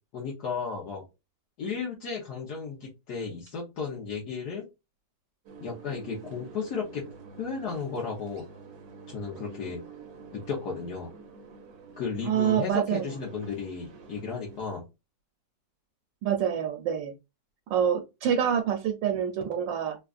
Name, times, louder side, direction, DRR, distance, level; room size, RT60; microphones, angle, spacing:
voice 1, 0.1-1.0 1.6-4.7 5.6-7.0 7.4-8.5 9.1-9.8 10.3-11.1 12.0-14.8, left 5 dB, 65° left, -3 dB, 1.4 m, -34 dB
sound 1, 5.5-14.6, right 5 dB, 60° right, 1.2 m, -48 dB
voice 2, 12.2-13.1 16.2-17.1 17.7-20.0, right 8 dB, 85° right, 4 dB, 1.3 m, -26 dB
5.0 x 2.4 x 2.4 m, 0.24 s
omnidirectional pair, 1.9 m